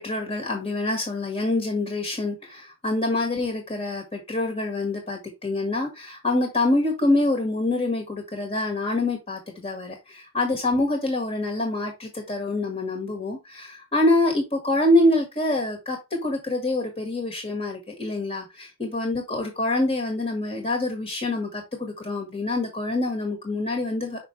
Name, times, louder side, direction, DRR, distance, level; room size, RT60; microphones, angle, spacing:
voice 1, 0.0-24.3, left 2 dB, 30° left, 2 dB, 1.8 m, -26 dB
5.9 x 5.8 x 3.3 m, 0.23 s
head